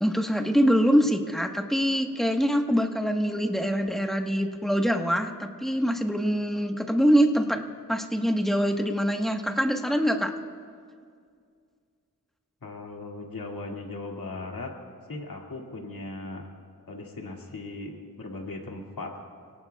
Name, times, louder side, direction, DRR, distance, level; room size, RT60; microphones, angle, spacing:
voice 1, 0.0-7.6 7.9-10.3, equal, ahead, 3 dB, 1.3 m, -24 dB
voice 2, 12.6-14.7 15.1-16.4 16.9-19.1, left 2 dB, 85° left, -1 dB, 2.3 m, -38 dB
27.5 x 18.0 x 2.4 m, 2.1 s
wide cardioid pair, 75°, 33 cm